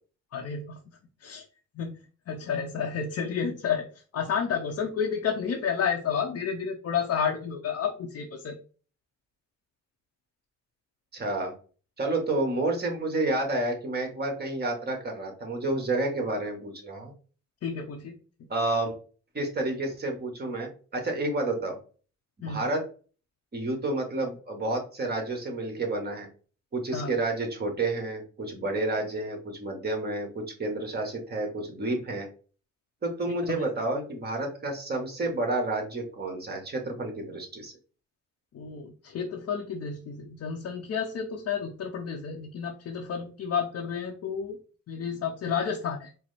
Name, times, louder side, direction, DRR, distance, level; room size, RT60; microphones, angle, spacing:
voice 1, 0.3-0.8 1.2-1.4 1.7-2.0 2.3-3.9 4.1-8.6 17.6-18.2 22.4-22.6 26.9-27.1 33.5-33.7 38.5-44.6 44.9-46.1, left 6 dB, 55° left, 0 dB, 0.8 m, -31 dB
voice 2, 11.1-11.5 12.0-17.1 18.5-18.9 19.3-21.8 22.5-22.8 23.5-26.3 26.7-32.3 33.0-37.7, right 2 dB, 35° right, 3 dB, 1.5 m, -30 dB
4.5 x 2.1 x 4.1 m, 0.38 s
cardioid pair, 90°, 30 cm